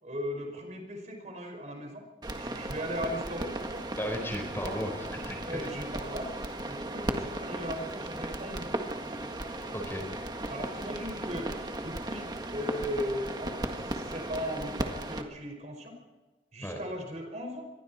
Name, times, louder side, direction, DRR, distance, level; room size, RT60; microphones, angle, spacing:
voice 1, 0.0-2.1 2.4-3.8 5.4-6.3 6.7-8.8 10.5-16.0 16.5-17.7, equal, 40° right, 3 dB, 5.3 m, -37 dB
sound 1, 2.2-15.2, right 1 dB, 25° right, 1.7 m, -36 dB
voice 2, 4.0-5.7 9.7-10.1 16.6-16.8, equal, 15° left, 3 dB, 4.5 m, -35 dB
27.0 x 23.0 x 4.3 m, 1.2 s
head